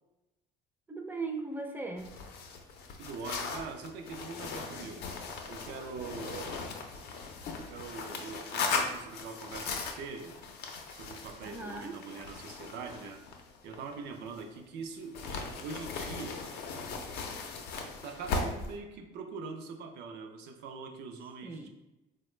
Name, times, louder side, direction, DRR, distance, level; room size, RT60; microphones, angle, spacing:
voice 1, 0.9-2.1 11.4-12.0 21.4-21.7, right 3 dB, 10° right, 4 dB, 0.4 m, -38 dB
sound 1, 2.0-14.6 15.1-18.7, left 4 dB, 75° left, 0.5 m, -38 dB
voice 2, 3.0-5.0 5.5-6.6 7.5-10.4 10.9-13.2 13.6-16.5 18.0-21.7, right 4 dB, 85° right, 5 dB, 0.5 m, -43 dB
3.7 x 2.1 x 3.1 m, 0.99 s
cardioid pair, 110°, 17 cm